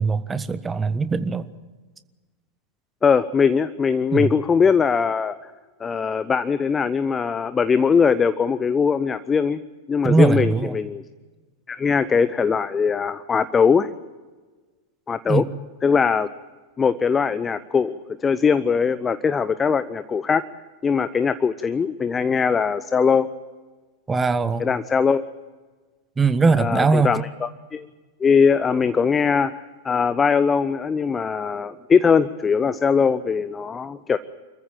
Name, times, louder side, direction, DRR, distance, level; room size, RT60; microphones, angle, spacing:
voice 1, 0.0-1.5 4.1-4.3 10.0-10.8 15.3-15.5 24.1-24.7 26.2-27.1, right 4 dB, 15° right, 13 dB, 1.2 m, -20 dB
voice 2, 3.0-5.4 5.8-9.6 9.9-11.0 11.7-13.9 15.1-15.4 15.8-16.3 16.8-20.4 20.8-23.3 24.6-25.2 26.6-27.9 28.2-34.2, left 6 dB, 20° left, 14 dB, 0.7 m, -21 dB
27.0 x 14.5 x 8.9 m, 1.4 s
figure-of-eight pair, 90°, 0 cm